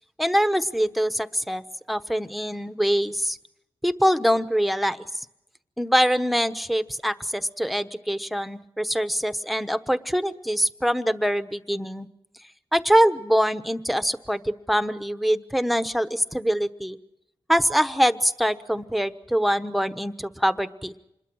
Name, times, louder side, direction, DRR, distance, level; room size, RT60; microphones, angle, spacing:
voice 1, 0.2-1.6 1.9-3.4 3.8-5.0 5.8-12.1 12.7-17.0 17.5-20.9, equal, ahead, 11 dB, 1.1 m, -24 dB
27.0 x 21.5 x 6.3 m, 0.84 s
cardioid pair, 65°, 10 cm